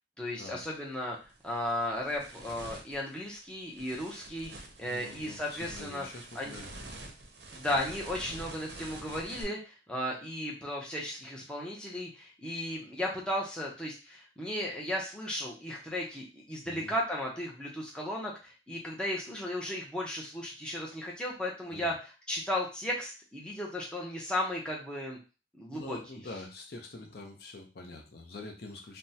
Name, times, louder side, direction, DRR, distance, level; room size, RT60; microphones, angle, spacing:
voice 1, 0.2-1.2 1.4-4.5 4.8-6.1 6.3-6.5 7.5-25.2 25.6-26.0, left 1 dB, 5° left, -3 dB, 0.5 m, -35 dB
sound 1, 0.6-0.8 1.2-9.4, right 2 dB, 55° right, 0.6 m, -47 dB
voice 2, 4.8-7.1 16.6-16.9 21.7-21.9 25.7-29.0, left 2 dB, 55° left, 2 dB, 0.5 m, -45 dB
3.3 x 2.0 x 2.7 m, 0.32 s
head